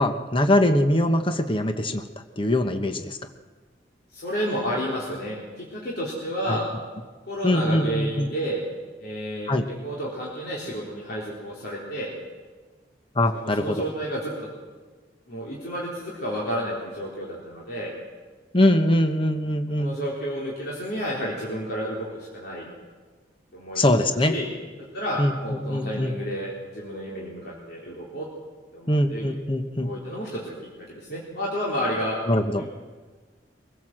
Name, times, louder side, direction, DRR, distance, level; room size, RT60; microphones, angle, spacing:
voice 1, 0.0-2.0 2.4-3.2 6.5-6.6 7.4-8.3 9.5-9.7 13.2-13.8 18.5-19.9 23.8-24.3 25.2-26.2 28.9-29.9 32.3-32.6, left 1 dB, 30° left, 7 dB, 1.0 m, -22 dB
voice 2, 4.1-6.6 7.3-8.6 9.0-12.1 13.3-14.5 15.3-17.9 19.8-22.7 23.5-23.9 24.3-24.5 24.9-28.3 28.7-29.3 29.8-30.5 30.9-32.2 32.6-32.7, equal, 60° left, -5 dB, 3.9 m, -31 dB
24.0 x 15.5 x 7.6 m, 1.4 s
head